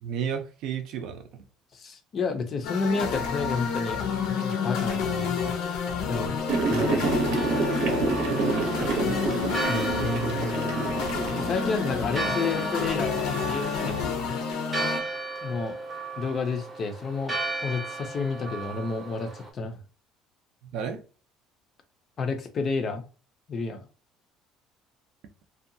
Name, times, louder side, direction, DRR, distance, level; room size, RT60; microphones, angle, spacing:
voice 1, 0.0-1.4 8.3-9.2 20.7-21.0, right 7 dB, 60° right, 0.5 m, -33 dB
voice 2, 1.7-4.0 4.4-5.6 6.1-6.4 6.7-7.0 9.7-10.6 11.4-14.2 15.4-15.8 16.2-19.8 22.2-23.0 23.5-23.8, left 4 dB, 30° left, 0.5 m, -30 dB
sound 1, 2.6-15.0, left 6 dB, 70° left, 0.6 m, -29 dB
sound 2, 6.5-14.0, right 3 dB, 90° right, 0.8 m, -29 dB
Church bell, 7.3-19.5, right 2 dB, 10° right, 0.7 m, -35 dB
2.7 x 2.2 x 2.6 m
cardioid pair, 170°, 0 cm